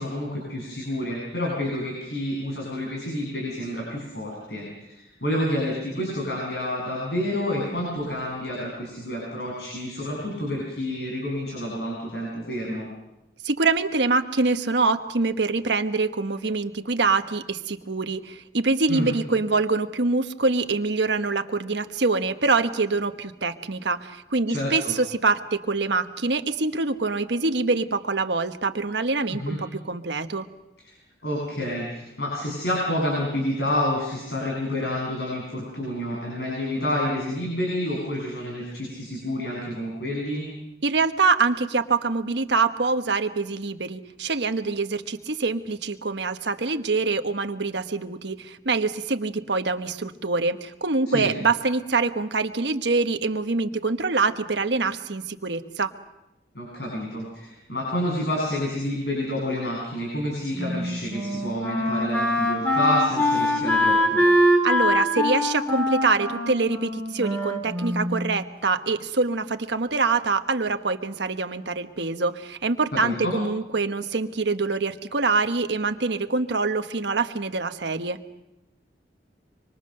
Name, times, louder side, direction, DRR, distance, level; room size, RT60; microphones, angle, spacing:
voice 1, 0.0-12.9 18.9-19.1 24.5-24.9 29.3-29.6 31.2-40.5 51.1-51.3 56.5-64.2 72.9-73.3, left 1 dB, 65° left, -2 dB, 7.5 m, -29 dB
voice 2, 13.4-30.5 40.8-55.9 64.6-78.2, right 3 dB, 80° right, 7 dB, 1.2 m, -25 dB
Wind instrument woodwind instrument, 60.6-68.4, left 1 dB, 10° left, 3.6 m, -23 dB
25.5 x 25.0 x 6.6 m, 0.93 s
head